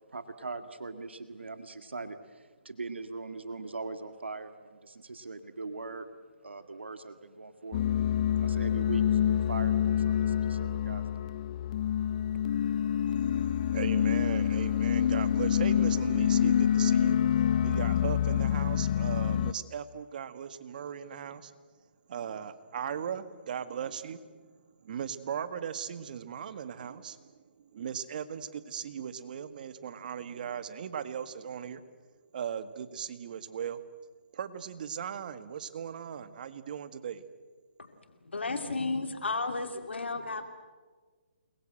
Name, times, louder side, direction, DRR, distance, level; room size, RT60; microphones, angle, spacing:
voice 1, 0.1-6.1 6.4-11.3, right 3 dB, 90° right, 9 dB, 1.9 m, -41 dB
sound 1, 7.7-19.5, left 9 dB, 40° left, 0.8 m, -27 dB
voice 2, 13.2-17.2 17.6-21.5 22.1-31.8 32.3-33.8 34.3-37.2, right 8 dB, 50° right, 12 dB, 1.8 m, -38 dB
voice 3, 38.2-40.5, left 3 dB, 85° left, 7 dB, 2.6 m, -33 dB
29.0 x 22.0 x 7.8 m, 1.5 s
hypercardioid pair, 150°, 6 cm